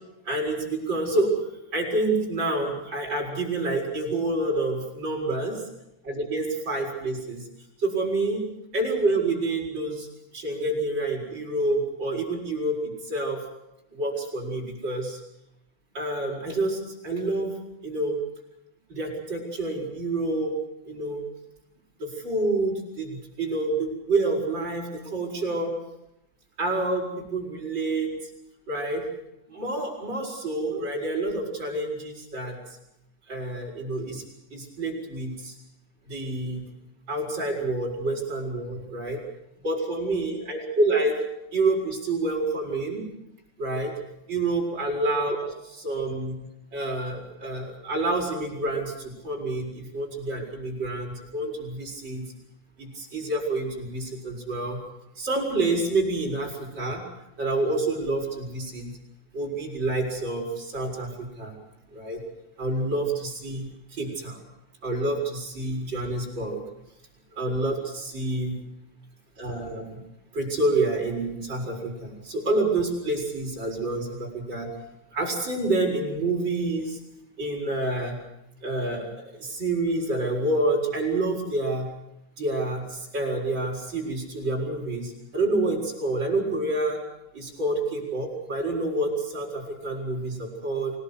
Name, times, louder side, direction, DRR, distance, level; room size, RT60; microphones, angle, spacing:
voice 1, 0.2-1.3 1.7-5.6 6.1-7.5 7.8-8.5 8.7-10.1 10.3-13.4 13.9-15.2 15.9-17.5 17.8-18.2 18.9-20.5 20.9-21.2 22.0-25.7 26.6-28.1 28.7-29.0 29.5-32.6 33.3-34.2 34.5-35.5 36.1-36.6 37.1-39.2 39.6-41.2 41.5-43.1 43.6-43.9 44.3-46.4 46.7-52.3 52.8-54.8 55.2-57.0 57.4-59.0 59.3-61.6 61.9-62.2 62.6-64.4 64.8-66.6 67.3-68.6 69.4-70.0 70.3-74.7 75.1-77.0 77.4-78.2 78.6-81.9 82.4-87.0 87.3-90.9, right 2 dB, 25° right, -1 dB, 7.2 m, -28 dB
26.0 x 19.0 x 8.2 m, 0.86 s
omnidirectional pair, 5.4 m